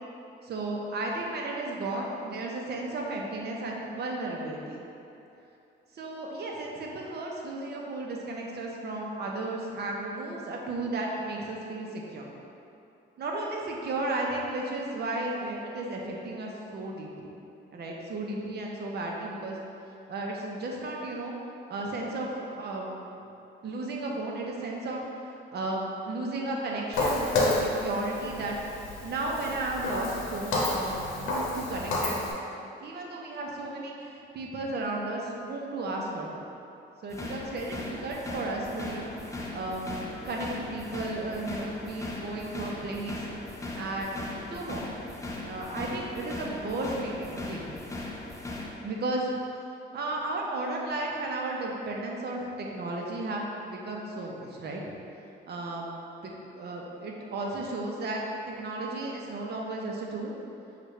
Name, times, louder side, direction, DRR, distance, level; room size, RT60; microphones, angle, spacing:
voice 1, 0.4-4.8 5.9-12.3 13.2-17.4 17.7-19.6 20.1-21.3 21.7-23.2 23.6-25.0 25.5-28.6 29.0-32.3 32.8-36.5 37.0-39.1 39.5-40.0 40.2-43.2 43.7-44.9 45.4-47.8 48.8-49.2 49.9-54.8 55.5-55.9 56.2-60.3, right 2 dB, 55° right, -1 dB, 0.7 m, -34 dB
Walk footsteps, 26.9-32.3, left 2 dB, 90° left, 0.8 m, -30 dB
sound 1, 37.1-48.7, left 2 dB, 15° left, 0.5 m, -39 dB
6.2 x 2.4 x 3.2 m, 2.8 s
cardioid pair, 90°, 20 cm